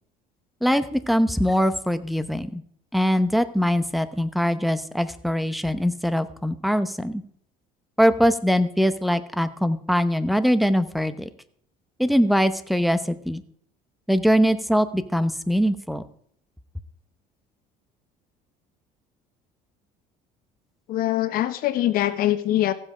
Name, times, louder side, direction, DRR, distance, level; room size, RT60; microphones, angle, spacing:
voice 1, 0.6-2.6 2.9-7.2 8.0-11.3 12.0-13.4 14.1-16.0, equal, ahead, 13 dB, 0.8 m, -22 dB
voice 2, 20.9-22.7, left 14 dB, 60° left, 11 dB, 1.2 m, -23 dB
15.0 x 7.7 x 5.0 m, 0.63 s
supercardioid pair, 95°, 17 cm